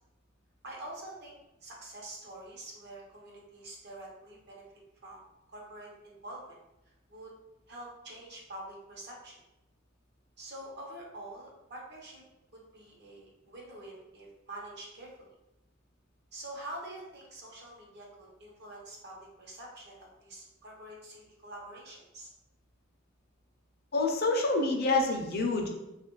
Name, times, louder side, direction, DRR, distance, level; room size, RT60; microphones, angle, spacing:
voice 1, 0.6-4.6 5.0-5.2 5.5-6.6 7.1-7.3 7.7-9.3 10.4-12.2 12.5-15.1 16.3-22.3, right 1 dB, 55° right, -2 dB, 0.8 m, -46 dB
voice 2, 23.9-25.7, left 2 dB, 50° left, 2 dB, 0.5 m, -27 dB
3.0 x 2.4 x 3.0 m, 0.92 s
head